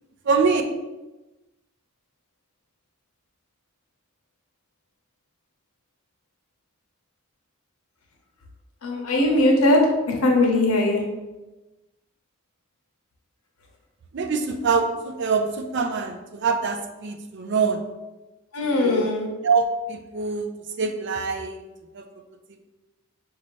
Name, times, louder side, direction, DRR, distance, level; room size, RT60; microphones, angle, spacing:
voice 1, 0.2-0.6 14.1-17.8 18.6-19.1 19.4-20.5 20.8-21.6 21.9-22.0, right 5 dB, 55° right, 7 dB, 0.4 m, -24 dB
voice 2, 8.8-11.0 18.5-19.3, left 1 dB, 85° left, 0 dB, 0.9 m, -20 dB
5.5 x 2.7 x 3.1 m, 1.1 s
head